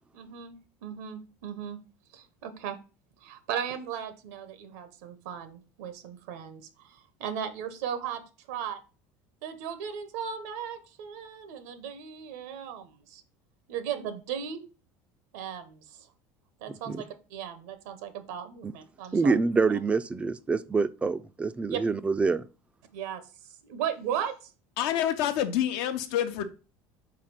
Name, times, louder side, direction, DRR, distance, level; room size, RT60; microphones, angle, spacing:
voice 1, 0.1-0.5 0.8-1.8 2.1-2.8 3.2-8.2 8.5-8.8 9.4-13.2 13.7-14.6 15.3-16.1 16.6-19.4 21.7-21.8 22.9-23.2 23.6-24.5, right 8 dB, 90° right, 1.0 m, -36 dB
voice 2, 19.1-22.5, right 4 dB, 15° right, 0.4 m, -26 dB
voice 3, 24.8-26.4, left 11 dB, 75° left, 0.8 m, -27 dB
5.0 x 3.9 x 5.8 m
cardioid pair, 130°, 8 cm